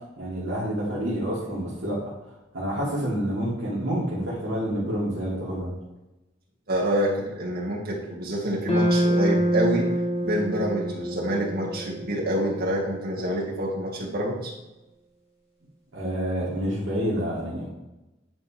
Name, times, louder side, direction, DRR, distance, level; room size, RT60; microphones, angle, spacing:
voice 1, 0.2-2.0 2.5-5.7 15.9-17.7, equal, 75° right, -8 dB, 2.8 m, -28 dB
voice 2, 6.7-9.9 10.2-14.5, equal, 55° right, -3 dB, 2.2 m, -27 dB
sound 1, 8.7-13.0, equal, 30° left, 1.6 m, -26 dB
10.5 x 4.6 x 3.6 m, 0.99 s
head